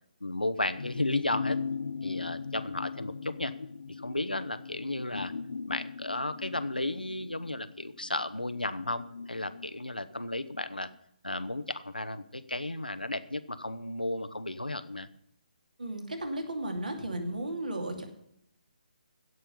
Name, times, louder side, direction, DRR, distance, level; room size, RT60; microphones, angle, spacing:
voice 1, 0.2-1.6 2.0-3.5 3.9-5.3 5.7-10.9 11.2-15.1, left 2 dB, 85° left, 12 dB, 0.8 m, -34 dB
sound 1, 0.8-10.6 10.9-11.0, left 5 dB, 60° left, 0.6 m, -39 dB
voice 2, 15.8-18.0, right 1 dB, 70° right, 3 dB, 2.7 m, -34 dB
16.0 x 5.7 x 6.9 m, 0.76 s
figure-of-eight pair, 140°, 5 cm